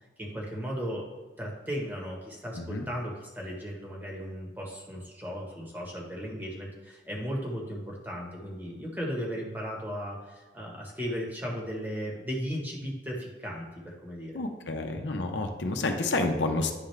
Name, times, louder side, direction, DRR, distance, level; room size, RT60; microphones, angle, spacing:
voice 1, 0.2-1.0 1.4-14.4, equal, 10° right, -2 dB, 1.1 m, -36 dB
voice 2, 14.3-16.7, left 2 dB, 75° left, 4 dB, 0.7 m, -29 dB
9.9 x 3.7 x 3.3 m, 1.3 s
head